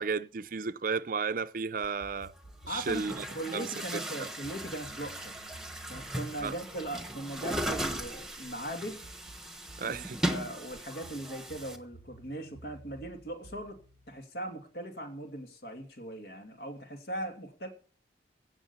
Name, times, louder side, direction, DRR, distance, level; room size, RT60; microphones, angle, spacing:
voice 1, 0.0-2.3 2.7-3.2 3.5-3.7 4.2-4.3 6.4-6.5 9.8-10.2, right 5 dB, 50° right, 0.5 m, -33 dB
Chatter / Gurgling / Tap, 1.8-1.9 2.7-11.8, right 1 dB, 5° right, 1.2 m, -38 dB
sound 1, 2.0-3.3 4.4-8.1 9.0-10.3 11.0-15.0, right 2 dB, 85° left, 3.5 m, -54 dB
voice 2, 2.7-5.4 5.9-9.0 9.8-13.8 14.1-17.7, right 1 dB, 65° left, 2.5 m, -39 dB
16.5 x 6.4 x 7.1 m
head